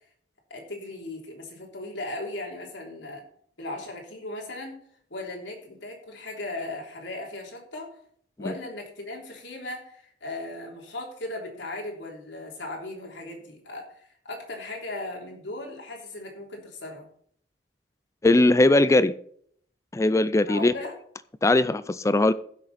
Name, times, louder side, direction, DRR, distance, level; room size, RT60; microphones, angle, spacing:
voice 1, 0.5-3.2 3.6-4.8 5.1-8.0 8.4-17.0 20.4-20.9, left 2 dB, 85° left, 0 dB, 3.3 m, -37 dB
voice 2, 18.2-19.1 19.9-20.7 21.4-22.3, left 2 dB, 15° left, 15 dB, 0.4 m, -20 dB
15.5 x 6.4 x 4.2 m, 0.62 s
head